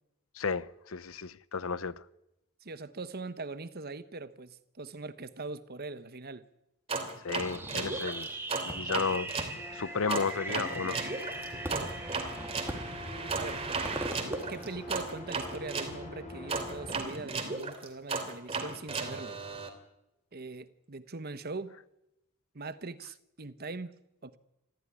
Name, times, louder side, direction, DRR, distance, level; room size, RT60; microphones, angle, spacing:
voice 1, 0.4-2.0 7.2-8.3 8.6-9.3 9.7-11.0, left 5 dB, 70° left, 0.8 m, -33 dB
voice 2, 2.6-6.4 11.7-11.9 13.4-13.6 14.5-19.4 20.3-21.7 22.5-23.9 24.2-24.4, right 3 dB, 45° right, 1.1 m, -41 dB
sound 1, 6.9-9.5 10.1-15.9 16.5-19.7, right 4 dB, 25° right, 3.0 m, -35 dB
Fireworks, 7.3-15.5, right 2 dB, 10° right, 2.4 m, -40 dB
sound 2, 9.5-17.0, left 1 dB, 30° left, 5.5 m, -45 dB
24.0 x 15.0 x 9.8 m
head